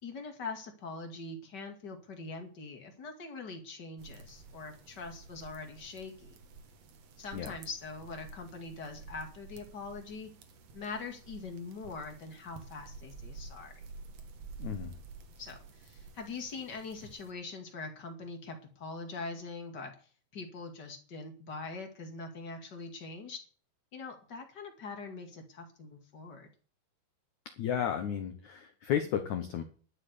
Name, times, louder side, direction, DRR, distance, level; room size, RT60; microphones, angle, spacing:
voice 1, 0.0-6.4 7.2-10.3 10.7-13.7 15.4-19.9 20.3-23.4 23.9-26.5, left 3 dB, 35° left, 4 dB, 1.8 m, -43 dB
sound 1, 4.0-17.3, right 4 dB, 60° right, 1.8 m, -50 dB
voice 2, 14.6-15.0 27.6-29.6, left 9 dB, 70° left, 7 dB, 1.8 m, -33 dB
12.0 x 7.6 x 8.3 m, 0.41 s
omnidirectional pair, 5.1 m